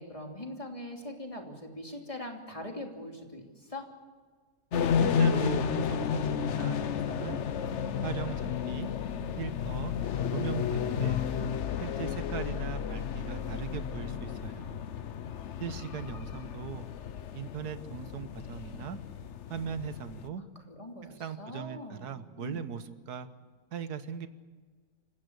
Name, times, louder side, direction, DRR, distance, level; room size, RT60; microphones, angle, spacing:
voice 1, 0.0-3.9 20.3-22.7, left 1 dB, 20° left, 2 dB, 3.0 m, -42 dB
sound 1, 4.7-20.3, left 7 dB, 55° left, 1.0 m, -32 dB
voice 2, 5.0-7.4 8.0-8.9 9.4-9.9 10.3-11.2 11.8-14.8 15.6-16.9 17.3-19.0 19.5-20.4 21.2-23.3 23.7-24.3, right 7 dB, 90° right, 11 dB, 1.7 m, -38 dB
27.5 x 15.5 x 8.2 m, 1.5 s
omnidirectional pair, 1.6 m